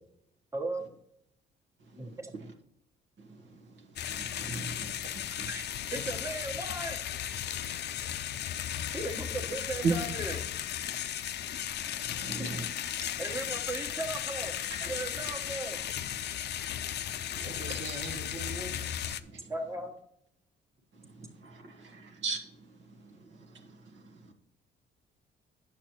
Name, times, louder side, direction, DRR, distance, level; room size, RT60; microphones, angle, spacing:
voice 1, 0.5-0.8 2.0-2.3 5.3-5.6 5.9-7.0 8.9-10.4 13.0-14.5 14.8-15.8 19.5-20.0, right 2 dB, 15° right, 1.2 m, -37 dB
voice 2, 3.2-3.6 4.1-5.5 9.8-10.0 11.8-12.6 14.8-14.9 17.3-17.5 17.8-18.1 19.2-19.5 21.0-22.4 23.0-23.2 23.5-24.0 24.3-24.4, right 4 dB, 70° right, 1.2 m, -37 dB
sound 1, 4.0-19.2, left 10 dB, 55° left, 0.5 m, -36 dB
voice 3, 17.4-18.8 21.8-22.0, right 1 dB, 30° right, 1.5 m, -43 dB
8.8 x 7.0 x 3.0 m
cardioid pair, 90°, 20 cm